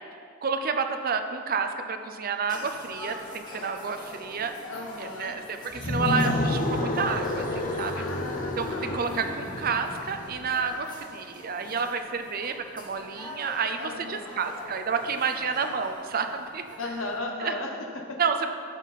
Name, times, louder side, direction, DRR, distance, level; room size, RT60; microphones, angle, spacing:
voice 1, 0.4-4.5 5.0-8.1 8.6-16.6 17.4-17.5 18.2-18.5, right 5 dB, 45° right, 7 dB, 0.6 m, -30 dB
sound 1, 2.5-17.2, left 1 dB, 20° left, 1.5 m, -45 dB
voice 2, 4.7-5.3 7.9-9.0 13.8-14.2 16.8-18.0, left 2 dB, 70° left, 1 dB, 1.0 m, -36 dB
sound 2, 5.7-10.8, left 1 dB, 40° left, 0.8 m, -30 dB
14.0 x 5.9 x 4.1 m, 2.4 s
head